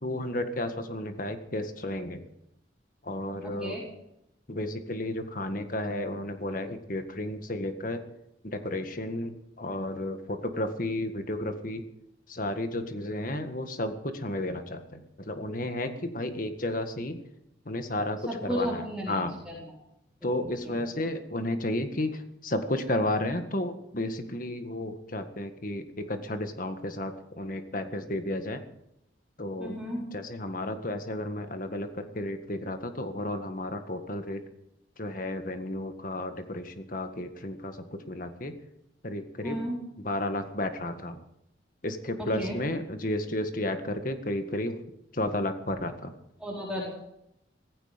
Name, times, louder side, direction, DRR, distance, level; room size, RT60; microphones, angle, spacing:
voice 1, 0.0-2.2 3.0-3.8 4.5-8.0 8.4-9.3 9.6-11.8 12.3-17.2 17.7-18.8 19.1-19.3 20.2-28.6 29.4-29.7 30.1-34.4 35.0-38.6 39.0-39.6 40.0-41.2 41.8-44.8 45.1-46.1, left 1 dB, 45° left, 7 dB, 1.8 m, -32 dB
voice 2, 3.4-3.8 18.3-19.6 20.2-20.3 20.6-20.8 29.6-30.0 39.4-39.8 42.2-42.6 46.4-46.9, equal, 5° right, -6 dB, 4.7 m, -34 dB
17.0 x 15.5 x 5.2 m, 0.82 s
head